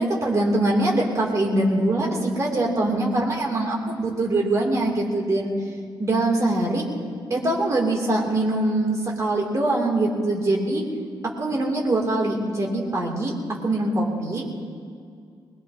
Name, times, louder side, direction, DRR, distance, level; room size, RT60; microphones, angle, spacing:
voice 1, 0.0-5.5 6.0-6.8 7.3-10.8 11.4-13.3 13.6-14.4, right 2 dB, 40° right, -2 dB, 2.9 m, -23 dB
21.0 x 21.0 x 2.9 m, 2.2 s
wide cardioid pair, 135°, 9 cm